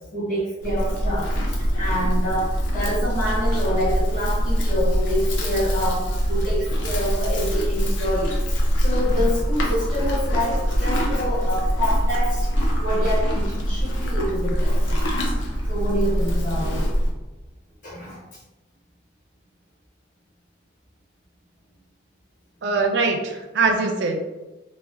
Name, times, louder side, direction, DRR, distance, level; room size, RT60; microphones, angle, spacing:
voice 1, 0.1-12.5 12.8-15.0 15.6-16.9 17.8-18.2, equal, 45° left, -6 dB, 1.0 m, -27 dB
Livestock farm animals working animals, 0.6-17.1, equal, 75° left, 0.6 m, -23 dB
voice 2, 22.6-24.2, right 4 dB, 65° right, 3 dB, 0.4 m, -22 dB
4.1 x 2.1 x 2.5 m, 1.1 s
head